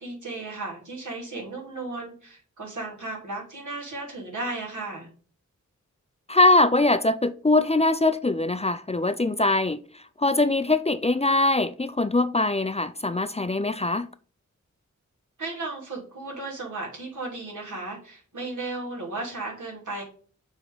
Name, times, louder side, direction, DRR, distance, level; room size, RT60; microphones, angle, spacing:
voice 1, 0.0-5.1 15.4-20.0, right 2 dB, 80° right, 3.0 m, -35 dB
voice 2, 6.3-9.8 10.2-14.1, left 2 dB, 20° left, 0.4 m, -22 dB
7.0 x 3.6 x 5.4 m
wide cardioid pair, 70°, 30 cm